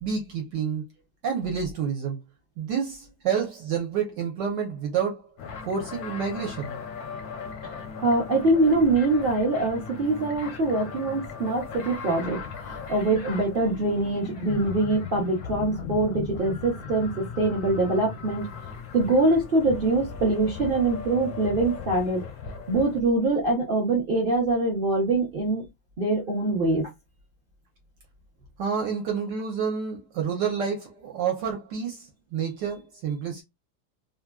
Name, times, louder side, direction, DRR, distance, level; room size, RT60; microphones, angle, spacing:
voice 1, 0.0-0.8 1.2-2.2 2.6-5.2 5.7-6.7 28.6-33.4, right 7 dB, 65° right, 1.3 m, -29 dB
sound 1, 5.4-23.0, left 6 dB, 70° left, 0.9 m, -38 dB
voice 2, 8.0-18.4 18.9-22.2 22.7-25.6 26.0-26.9, right 2 dB, 50° right, 0.6 m, -24 dB
3.2 x 2.5 x 2.3 m
omnidirectional pair, 2.2 m